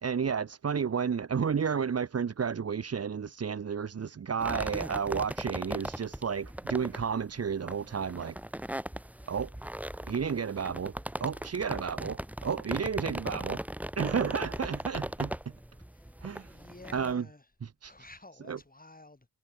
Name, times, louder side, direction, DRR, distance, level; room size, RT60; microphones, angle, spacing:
voice 1, 0.0-8.4 9.3-9.5 10.1-13.6 14.0-15.4 16.2-16.5 16.9-17.2 17.6-17.9 18.5-18.6, right 6 dB, 40° right, 0.6 m, -32 dB
sound 1, 4.4-17.1, right 1 dB, 5° right, 0.7 m, -38 dB
voice 2, 12.7-13.4 15.9-16.2 16.5-17.5 17.8-19.3, left 2 dB, 20° left, 5.1 m, -52 dB
wide cardioid pair, 120°, 38 cm